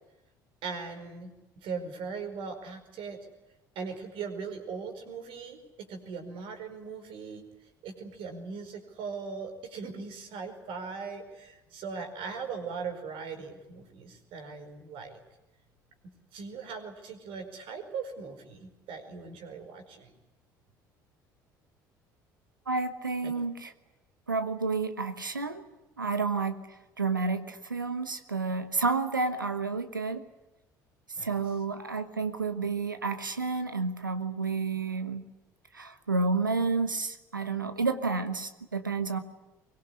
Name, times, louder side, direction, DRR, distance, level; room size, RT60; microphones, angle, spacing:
voice 1, 0.6-1.3 1.6-3.2 3.7-7.5 7.8-15.2 16.3-20.1 23.2-23.3 31.2-31.3, right 5 dB, 55° right, 6 dB, 5.0 m, -39 dB
voice 2, 22.7-23.7 24.3-25.6 26.0-26.6 27.0-30.2 31.2-35.2 35.7-39.2, right 4 dB, 90° right, 11 dB, 1.3 m, -30 dB
23.5 x 21.5 x 9.8 m, 1.0 s
figure-of-eight pair, 55°, 10 cm